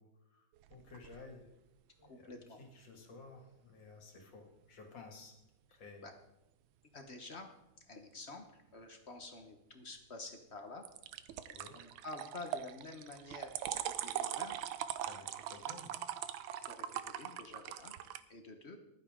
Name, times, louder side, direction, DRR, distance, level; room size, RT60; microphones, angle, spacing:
voice 1, 0.0-1.4 2.0-5.3 5.7-6.1 11.5-11.8 15.0-16.0, left 3 dB, 70° left, 2 dB, 2.9 m, -54 dB
sound 1, 0.6-1.2 10.8-18.2, right 11 dB, 90° right, 1.4 m, -41 dB
voice 2, 2.0-2.6 6.0-6.1 6.9-7.5 7.9-10.9 11.7-14.6 16.6-18.0 18.3-18.8, left 2 dB, 40° left, 5 dB, 1.2 m, -49 dB
14.5 x 11.5 x 3.7 m, 0.91 s
omnidirectional pair, 2.1 m